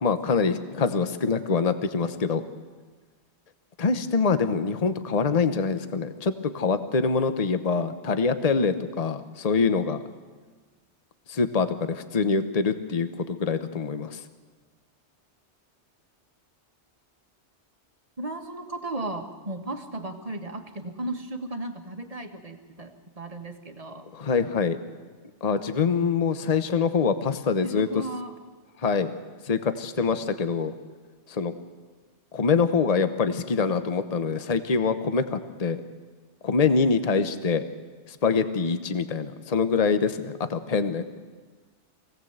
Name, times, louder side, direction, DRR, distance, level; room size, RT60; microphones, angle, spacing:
voice 1, 0.0-2.4 3.8-10.0 11.3-14.2 24.1-24.8 25.4-28.0 28.8-29.1 29.4-30.7 31.3-31.5 32.3-35.8 36.4-37.6 38.1-41.0, left 5 dB, 35° left, 10 dB, 1.0 m, -25 dB
voice 2, 18.2-24.1 27.6-28.4, right 2 dB, 30° right, 5 dB, 1.7 m, -35 dB
24.0 x 17.5 x 8.0 m, 1.4 s
omnidirectional pair, 1.2 m